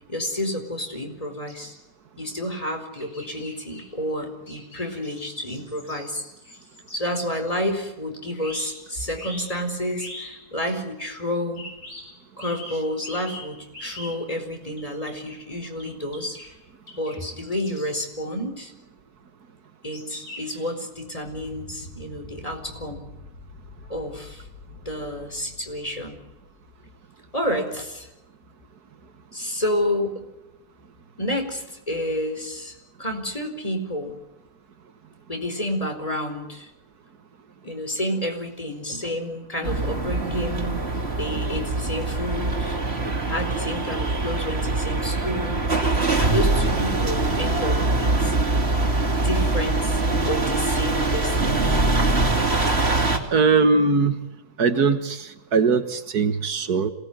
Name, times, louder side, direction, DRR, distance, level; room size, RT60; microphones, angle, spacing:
voice 1, 0.1-1.7 2.2-6.6 6.9-11.6 12.4-16.4 17.0-18.7 19.8-23.0 23.9-24.5 24.8-26.2 27.3-28.1 29.3-30.2 31.2-34.1 35.3-36.7 37.6-40.8 41.2-42.8 43.2-45.6 46.2-48.4 49.0-51.7 54.7-54.8, left 1 dB, 20° left, 4 dB, 4.7 m, -30 dB
sound 1, 1.5-1.7 2.9-3.9 4.5-7.0 8.3-9.5 9.9-10.3 10.7-10.8 11.6-12.1 12.4-14.2 14.8-15.4 15.8-15.9 16.1-16.5 16.9-17.2 17.4-18.0 19.9-20.7, left 1 dB, 65° left, 8.4 m, -41 dB
sound 2, 21.2-27.0, left 2 dB, 45° left, 8.1 m, -45 dB
sound 3, 39.6-53.2, right 2 dB, 40° right, 3.2 m, -23 dB
voice 2, 53.3-54.2 54.6-56.9, right 4 dB, 75° right, 9 dB, 2.0 m, -20 dB
27.0 x 19.0 x 9.3 m, 0.97 s
omnidirectional pair, 1.7 m